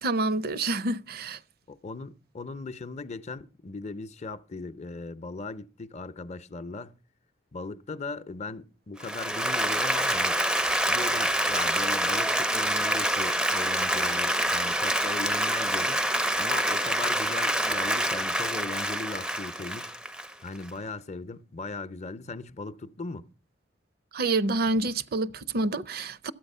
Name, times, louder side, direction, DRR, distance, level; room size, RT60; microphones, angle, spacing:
voice 1, 0.0-1.4 24.1-26.3, right 2 dB, 55° right, 0.6 m, -27 dB
voice 2, 1.7-7.0 7.5-10.4 10.8-16.0 16.4-19.9 20.4-23.3, left 3 dB, 40° left, 0.6 m, -38 dB
Applause, 9.0-20.7, right 1 dB, 5° right, 0.5 m, -26 dB
13.0 x 8.6 x 5.5 m
head